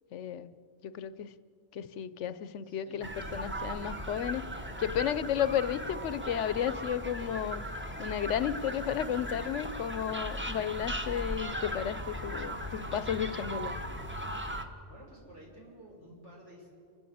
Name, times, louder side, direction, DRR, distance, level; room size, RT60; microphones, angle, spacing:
voice 1, 0.1-0.5 0.8-1.3 1.7-4.4 4.8-7.6 8.0-13.8, left 9 dB, 80° left, 15 dB, 1.0 m, -33 dB
voice 2, 2.6-3.0 14.9-16.7, right 1 dB, 80° right, -3 dB, 6.0 m, -52 dB
sound 1, 3.0-14.7, equal, 10° right, 1.2 m, -38 dB
29.5 x 10.0 x 8.6 m, 2.5 s
omnidirectional pair, 1.2 m